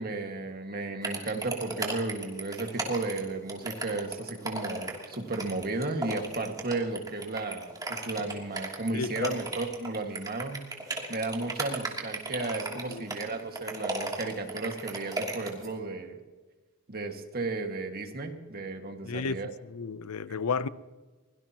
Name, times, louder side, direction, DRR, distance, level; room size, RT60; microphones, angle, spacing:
voice 1, 0.0-10.6 11.1-16.2 16.9-19.5 20.3-20.4, right 3 dB, 45° right, 1.9 m, -34 dB
sound 1, 1.0-15.7, right 2 dB, 20° right, 2.9 m, -35 dB
voice 2, 8.9-9.4 12.7-13.0 19.0-20.7, left 5 dB, 90° left, 0.6 m, -33 dB
23.0 x 17.5 x 3.0 m
head